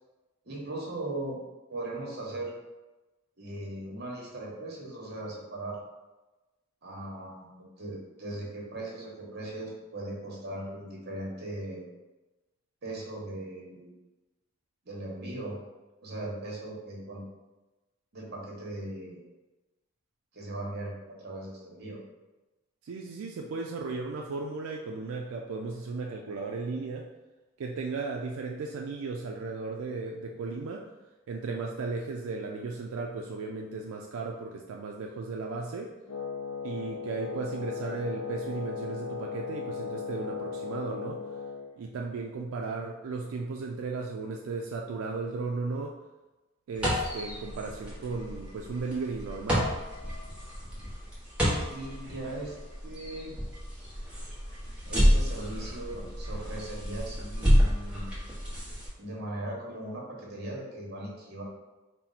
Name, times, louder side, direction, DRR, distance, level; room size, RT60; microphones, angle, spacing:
voice 1, 0.4-1.4 1.7-2.5 3.4-5.8 6.8-11.8 12.8-13.9 14.9-15.6 16.0-17.2 18.1-19.2 20.3-22.0 51.7-52.5 52.8-53.3 54.8-58.0 59.0-61.4, right 1 dB, 50° right, -2 dB, 1.0 m, -38 dB
voice 2, 22.8-27.1 27.6-30.9 31.3-35.9 36.6-41.2 41.8-46.0 46.7-49.8, right 3 dB, 85° right, 1 dB, 0.4 m, -35 dB
Wind instrument woodwind instrument, 36.1-41.8, left 5 dB, 85° left, 0.5 m, -37 dB
sound 1, 46.7-58.9, equal, 5° right, 0.9 m, -29 dB
4.3 x 2.1 x 3.9 m, 1.1 s
head